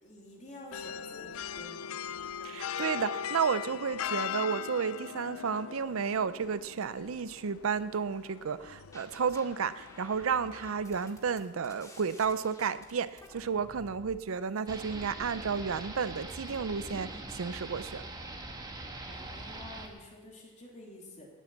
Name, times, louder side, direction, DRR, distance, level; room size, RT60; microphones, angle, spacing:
voice 1, 0.0-2.0 19.1-21.3, left 1 dB, 35° left, -1 dB, 3.2 m, -49 dB
sound 1, 0.7-11.0, left 8 dB, 80° left, 0.4 m, -40 dB
voice 2, 2.4-18.0, right 6 dB, 70° right, 15 dB, 0.5 m, -32 dB
sound 2, 8.6-9.4 9.8-14.2, left 1 dB, 15° left, 2.0 m, -53 dB
sound 3, 14.7-19.9, right 2 dB, 20° right, 1.5 m, -42 dB
18.5 x 8.0 x 7.3 m, 1.3 s
head